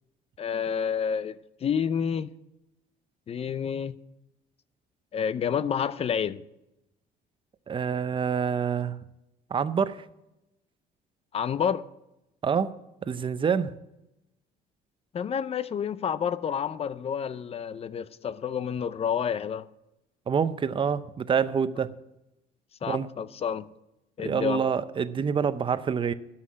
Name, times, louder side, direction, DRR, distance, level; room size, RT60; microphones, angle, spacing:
voice 1, 0.4-2.3 3.3-4.0 5.1-6.4 11.3-11.8 15.1-19.6 22.8-23.6 24.2-24.6, left 7 dB, 35° left, 0.5 m, -29 dB
voice 2, 7.7-9.0 9.5-10.0 12.4-12.7 13.0-13.7 20.3-21.9 22.8-23.1 24.2-26.1, right 6 dB, 30° right, 0.6 m, -27 dB
12.5 x 5.7 x 8.4 m
cardioid pair, 110°, 17 cm